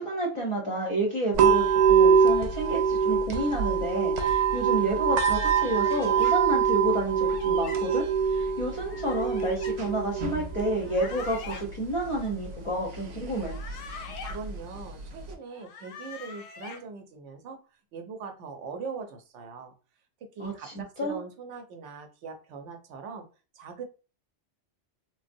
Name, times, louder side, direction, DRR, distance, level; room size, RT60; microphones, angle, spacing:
voice 1, 0.0-13.5 20.4-21.2, right 1 dB, 35° left, -1 dB, 0.5 m, -30 dB
sound 1, 1.3-15.3, right 6 dB, 65° right, 0.4 m, -25 dB
sound 2, 5.7-6.4 7.2-7.8 8.9-9.7 10.8-11.6 13.3-14.4 15.5-16.8, left 5 dB, 90° left, 0.9 m, -43 dB
voice 2, 14.1-17.6 17.9-19.7 20.4-23.3 23.6-23.8, right 5 dB, 80° right, 5 dB, 0.9 m, -41 dB
3.4 x 2.0 x 2.5 m, 0.34 s
omnidirectional pair, 1.2 m